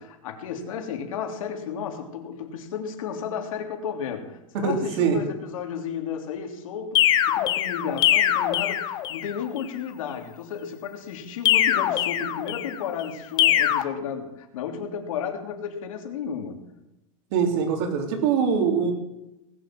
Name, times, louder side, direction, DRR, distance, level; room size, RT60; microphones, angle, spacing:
voice 1, 0.0-16.7, left 7 dB, 75° left, 4 dB, 3.2 m, -33 dB
voice 2, 4.5-5.2 17.3-18.9, right 6 dB, 45° right, 4 dB, 3.5 m, -23 dB
sound 1, 6.9-9.4 11.4-12.8 13.4-13.8, left 12 dB, 25° left, 0.9 m, -22 dB
19.0 x 8.4 x 7.8 m, 0.91 s
supercardioid pair, 175°, 18 cm